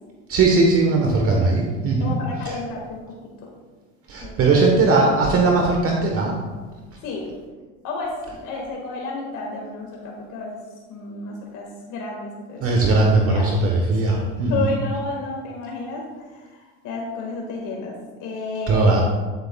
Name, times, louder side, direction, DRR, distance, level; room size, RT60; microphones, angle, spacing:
voice 1, 0.3-2.1 4.1-6.4 12.6-14.7 18.7-19.0, right 3 dB, 40° right, 0 dB, 1.1 m, -19 dB
voice 2, 2.0-3.1 4.2-4.6 7.0-7.3 7.8-10.6 10.9-13.0 13.3-13.6 14.0-19.0, left 3 dB, 55° left, -1 dB, 1.8 m, -32 dB
10.5 x 8.1 x 2.3 m, 1.4 s
supercardioid pair, 120°, 37 cm